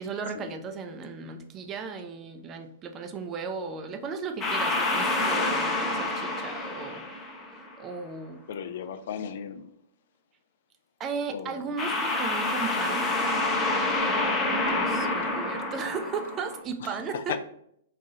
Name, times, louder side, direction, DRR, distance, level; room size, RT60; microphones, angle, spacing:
voice 1, 0.0-7.2 7.5-8.4 11.0-13.1 14.5-17.4, right 5 dB, 25° right, 6 dB, 0.5 m, -36 dB
sound 1, 4.4-7.7 11.8-16.6, left 2 dB, 20° left, 0.7 m, -28 dB
voice 2, 8.5-9.7 11.3-11.7 16.8-17.4, left 8 dB, 55° left, 10 dB, 0.3 m, -36 dB
4.1 x 2.7 x 3.8 m, 0.70 s
figure-of-eight pair, 110°, 0 cm